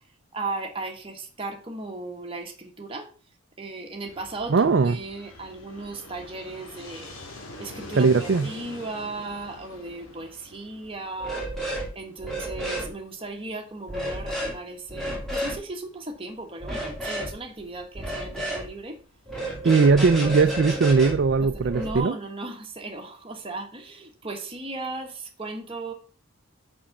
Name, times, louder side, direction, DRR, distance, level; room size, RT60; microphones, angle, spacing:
voice 1, 0.3-3.1 3.6-7.1 7.6-11.4 11.9-19.0 19.6-20.4 21.7-25.1 25.4-25.9, right 2 dB, 25° right, 1.3 m, -36 dB
Fixed-wing aircraft airplane, 4.1-19.8, left 2 dB, 65° left, 2.2 m, -46 dB
voice 2, 4.5-5.0 7.9-8.5 19.6-22.2, right 4 dB, 55° right, 0.4 m, -19 dB
sound 1, 11.2-11.9 12.2-12.9 13.9-14.5 14.9-15.6 16.6-17.3 17.9-18.7 19.3-22.0, right 1 dB, ahead, 2.9 m, -31 dB
6.4 x 5.5 x 5.9 m
head